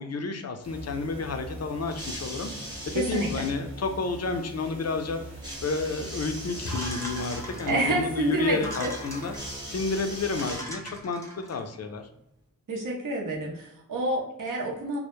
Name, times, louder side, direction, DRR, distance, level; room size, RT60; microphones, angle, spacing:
voice 1, 0.0-2.5 2.9-5.2 5.6-9.3 9.7-11.2 11.5-12.1, left 4 dB, 50° left, 6 dB, 0.4 m, -30 dB
sound 1, 0.6-10.6, right 1 dB, 35° right, 0.8 m, -42 dB
sound 2, 1.9-3.6 5.4-7.5 9.3-11.0 12.0-12.1, equal, 10° right, 0.9 m, -40 dB
voice 2, 2.9-3.5 7.7-8.9 12.7-15.0, right 1 dB, 70° right, -2 dB, 0.6 m, -28 dB
sound 3, 6.7-8.0 8.5-9.6 10.0-10.1 10.4-11.6, equal, 10° left, 0.7 m, -39 dB
2.1 x 2.1 x 2.9 m, 0.81 s
wide cardioid pair, 50°, 33 cm